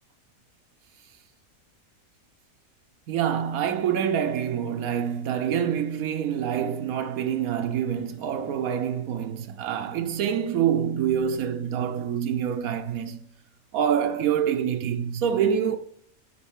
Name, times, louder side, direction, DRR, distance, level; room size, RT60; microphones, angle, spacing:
voice 1, 3.1-13.2 13.7-15.8, right 8 dB, 80° right, 1.1 m, -26 dB
9.9 x 5.0 x 3.6 m
omnidirectional pair, 1.5 m